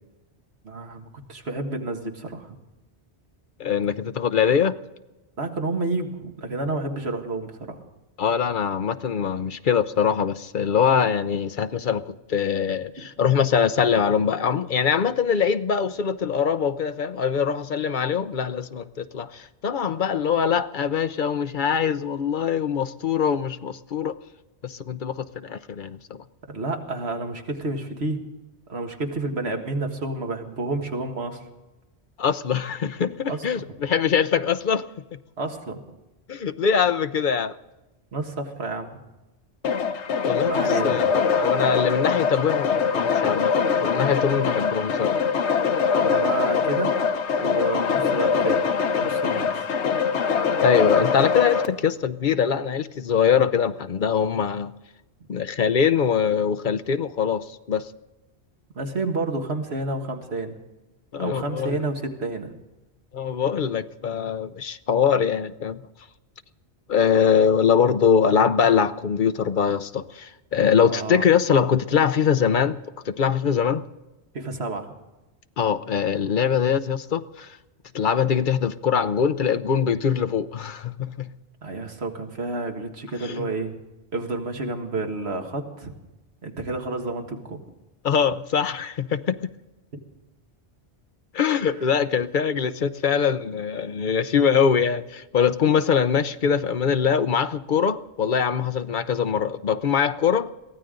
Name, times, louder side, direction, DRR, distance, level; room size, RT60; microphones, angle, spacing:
voice 1, 0.6-2.6 5.4-7.8 13.0-13.1 26.5-28.2 28.7-31.4 33.3-33.6 35.4-35.8 38.1-39.0 40.4-41.1 46.0-47.0 47.4-48.6 49.0-49.7 58.7-60.6 61.2-62.5 67.4-67.5 70.9-71.2 74.3-74.9 81.6-83.7 84.1-85.9 86.4-87.6, right 2 dB, 70° right, 1.9 m, -30 dB
voice 2, 3.6-4.8 8.2-24.2 24.6-26.2 32.2-34.9 36.3-37.6 40.2-43.5 43.8-45.2 50.6-54.7 55.3-57.9 61.1-61.8 63.1-65.8 66.9-72.8 73.0-73.8 75.6-77.6 77.9-81.3 83.2-83.5 88.0-89.4 91.3-100.5, left 7 dB, 55° left, 0.8 m, -23 dB
sound 1, 39.6-51.7, left 6 dB, 80° left, 1.2 m, -23 dB
23.0 x 16.0 x 3.8 m
omnidirectional pair, 1.1 m